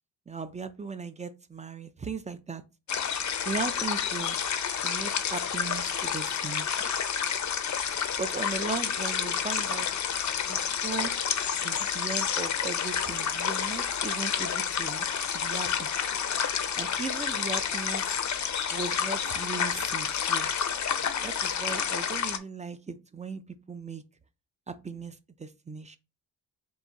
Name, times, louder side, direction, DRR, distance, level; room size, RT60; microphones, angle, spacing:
voice 1, 0.3-2.6 3.5-4.4 4.8-6.8 8.2-9.9 10.5-11.1 11.6-15.1 15.3-15.9 16.8-18.2 18.7-20.5 21.2-23.4 23.7-24.0 24.7-26.0, right 4 dB, 20° right, 0.3 m, -37 dB
sound 1, 2.9-22.4, left 7 dB, 45° left, 0.5 m, -29 dB
3.8 x 2.5 x 3.9 m
wide cardioid pair, 105°, 41 cm